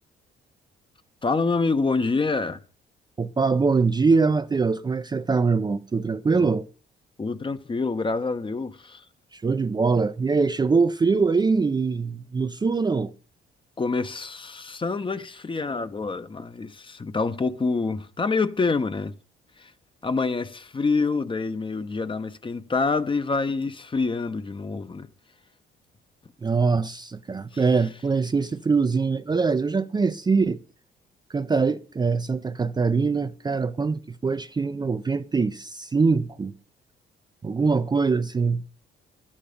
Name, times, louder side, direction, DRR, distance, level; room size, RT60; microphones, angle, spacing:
voice 1, 1.2-2.6 6.4-6.5 7.2-9.0 13.8-19.1 19.6-19.7 20.0-25.1 27.5-27.6, left 4 dB, 25° left, 0.8 m, -26 dB
voice 2, 3.2-6.7 9.3-13.1 26.4-30.6 31.3-36.5 37.4-38.7, right 4 dB, 20° right, 0.5 m, -23 dB
11.5 x 8.7 x 5.1 m
cardioid pair, 90°, 20 cm